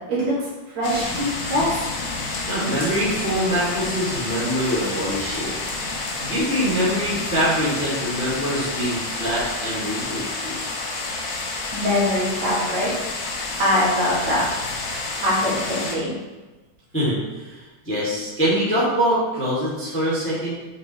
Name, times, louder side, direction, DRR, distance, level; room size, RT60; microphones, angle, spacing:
sound 1, 0.8-16.0, left 3 dB, 60° left, 1.5 m, -29 dB
voice 1, 0.8-1.8 11.7-12.9 13.6-14.5 15.2-16.2, left 1 dB, 65° right, -8 dB, 3.4 m, -22 dB
voice 2, 2.5-5.5 6.2-10.6 16.9-17.5 17.9-20.5, equal, 5° left, -8 dB, 1.9 m, -24 dB
7.9 x 5.6 x 3.1 m, 1.2 s
omnidirectional pair, 3.4 m